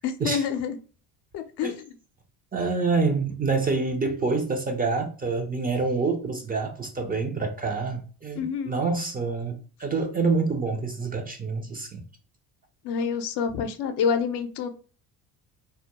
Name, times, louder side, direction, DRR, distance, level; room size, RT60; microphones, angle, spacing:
voice 1, 0.0-0.8 1.3-1.8 8.4-8.8 12.8-14.7, left 7 dB, 65° left, 0.6 m, -27 dB
voice 2, 2.5-12.0, right 4 dB, 20° right, 0.4 m, -27 dB
2.2 x 2.1 x 2.9 m
supercardioid pair, 80°, 44 cm